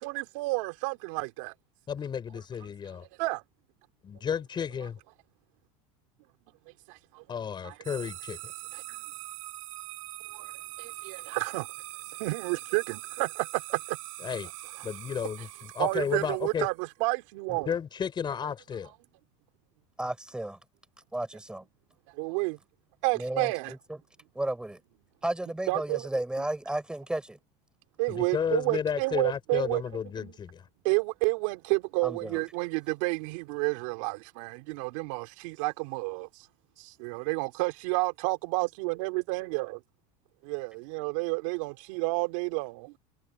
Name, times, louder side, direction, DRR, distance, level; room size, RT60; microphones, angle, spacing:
voice 1, 0.0-1.5 3.2-3.4 6.9-7.2 7.6-7.7 8.7-9.0 10.3-10.5 10.8-11.7 12.2-14.0 15.8-17.7 22.1-22.6 23.0-23.7 25.7-26.1 28.0-29.8 30.2-30.3 30.8-36.5 36.8-39.8 40.4-42.9, right 28 dB, 75° right, 3.6 m, -30 dB
voice 2, 1.9-3.1 4.0-5.0 7.3-8.5 14.2-14.5 14.8-16.7 17.5-18.9 28.1-30.7, left 7 dB, 25° left, 5.2 m, -33 dB
sound 1, 7.8-16.8, right 19 dB, 90° right, 7.8 m, -43 dB
voice 3, 20.0-20.6 21.1-21.6 23.1-24.0 24.4-24.8 25.2-27.4 32.0-32.4, right 1 dB, 5° right, 3.6 m, -33 dB
supercardioid pair, 130°, 17 cm